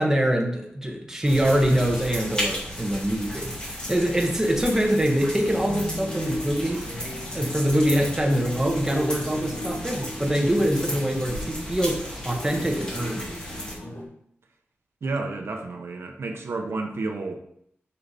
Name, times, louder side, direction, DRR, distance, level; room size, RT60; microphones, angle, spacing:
voice 1, 0.0-3.5 3.9-6.9 7.3-13.3, equal, 10° right, 1 dB, 1.2 m, -24 dB
sound 1, 1.2-13.7, equal, 20° left, 2.2 m, -34 dB
sound 2, 5.5-14.0, left 1 dB, 70° left, 2.9 m, -37 dB
voice 2, 15.0-17.3, right 3 dB, 70° right, 3 dB, 1.0 m, -30 dB
6.6 x 5.8 x 4.2 m, 0.72 s
wide cardioid pair, 120°, 4 cm